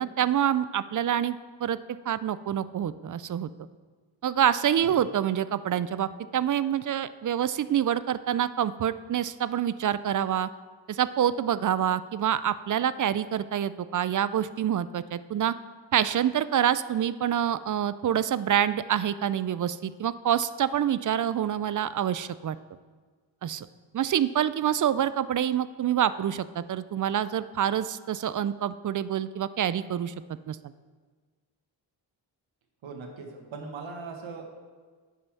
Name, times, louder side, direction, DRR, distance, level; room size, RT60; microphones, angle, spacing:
voice 1, 0.0-1.8 2.1-3.5 4.2-10.5 10.9-15.5 15.9-22.6 23.4-23.7 23.9-30.1 30.5-30.6, right 10 dB, 45° right, 15 dB, 0.4 m, -26 dB
voice 2, 32.8-34.4, right 4 dB, 80° right, 3 dB, 1.6 m, -40 dB
9.5 x 5.6 x 6.0 m, 1.5 s
cardioid pair, 65°, 46 cm